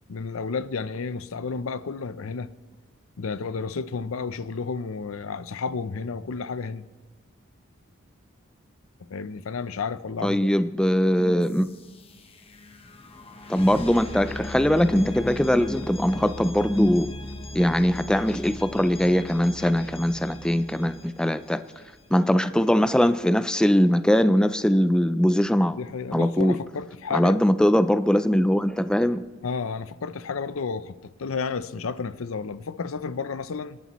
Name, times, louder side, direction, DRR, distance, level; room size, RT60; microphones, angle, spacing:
voice 1, 0.1-2.5 3.2-6.9 9.1-10.5 25.8-27.4 29.4-33.8, left 5 dB, 85° left, 0.6 m, -31 dB
voice 2, 10.2-11.7 13.5-17.1 17.5-21.6 22.1-25.8 26.1-26.6 27.1-29.2, equal, 5° left, 0.3 m, -21 dB
sound 1, 11.4-22.2, left 2 dB, 30° left, 0.9 m, -39 dB
27.5 x 11.5 x 3.1 m
head